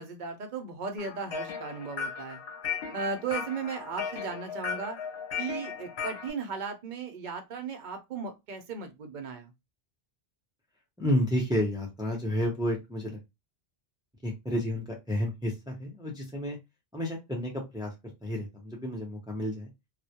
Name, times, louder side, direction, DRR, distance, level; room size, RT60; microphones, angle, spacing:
voice 1, 0.0-2.4 2.9-5.0 5.4-9.5, right 5 dB, 55° right, 0.6 m, -36 dB
sound 1, 1.0-6.3, left 7 dB, 75° left, 0.9 m, -36 dB
voice 2, 11.0-13.2 14.2-16.6 16.9-17.9 18.2-19.7, left 1 dB, 5° right, 0.5 m, -31 dB
2.2 x 2.1 x 2.7 m
omnidirectional pair, 1.1 m